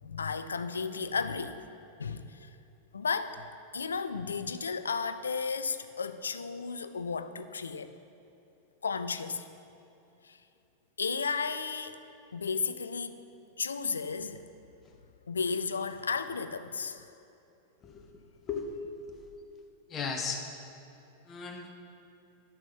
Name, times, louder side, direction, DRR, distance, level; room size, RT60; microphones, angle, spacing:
voice 1, 0.0-1.6 2.0-2.5 2.9-7.9 8.8-9.5 10.2-10.4 11.0-12.0 12.3-13.2 13.6-14.5 15.3-17.1, left 5 dB, 70° left, 0.4 m, -34 dB
voice 2, 17.8-18.2 18.5-18.8 19.1-19.2 19.9-20.4 21.3-21.7, left 5 dB, 25° left, 1.2 m, -36 dB
11.5 x 6.8 x 5.9 m
figure-of-eight pair, 90°, 0 cm